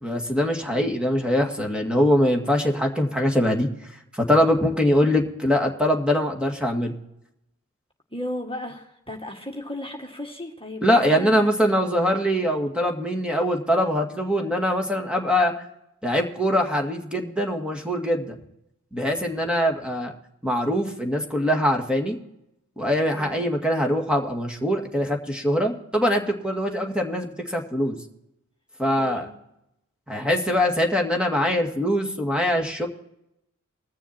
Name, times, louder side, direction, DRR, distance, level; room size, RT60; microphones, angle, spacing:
voice 1, 0.0-3.7 4.1-6.9 10.8-15.5 16.0-18.4 18.9-20.1 20.4-22.2 22.8-28.0 28.8-29.3 30.1-32.9, equal, 5° right, 0 dB, 2.0 m, -23 dB
voice 2, 8.1-11.5 23.2-23.5 29.0-29.2, left 1 dB, 15° left, 1 dB, 1.8 m, -35 dB
20.5 x 7.0 x 4.3 m, 0.83 s
cardioid pair, 40°, 30 cm